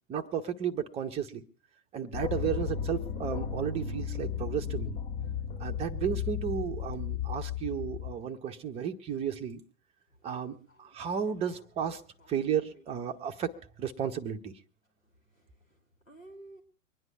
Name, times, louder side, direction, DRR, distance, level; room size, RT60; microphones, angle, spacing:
voice 1, 0.1-1.4 1.9-4.9 5.6-9.6 10.2-12.0 12.3-14.6, right 8 dB, 15° right, 6 dB, 0.7 m, -33 dB
sound 1, 2.1-8.1, left 7 dB, 40° left, 1.3 m, -34 dB
voice 2, 10.1-11.0 11.4-12.3 12.7-13.0 13.3-13.4 15.0-16.6, right 2 dB, 85° left, 2 dB, 2.9 m, -56 dB
24.0 x 9.8 x 4.6 m, 0.42 s
figure-of-eight pair, 105°, 39 cm